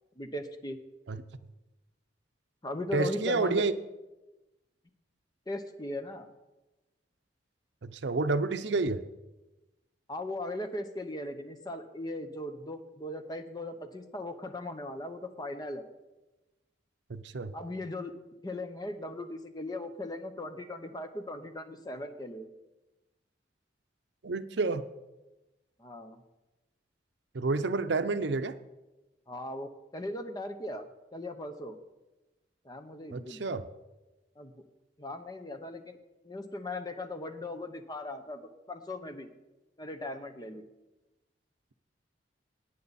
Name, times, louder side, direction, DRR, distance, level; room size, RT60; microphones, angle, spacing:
voice 1, 0.2-0.8 2.6-3.7 5.5-6.3 10.1-15.8 17.5-18.1 18.4-22.5 25.8-26.2 29.3-31.8 32.6-33.4 34.4-34.6 35.0-36.0 36.2-39.3 39.8-40.6, left 1 dB, 20° left, 8 dB, 0.9 m, -38 dB
voice 2, 2.9-3.7 7.8-9.0 17.1-17.5 24.2-24.8 27.3-28.5 33.1-33.6, right 3 dB, 75° right, 11 dB, 0.6 m, -29 dB
17.5 x 9.3 x 4.2 m, 1.1 s
head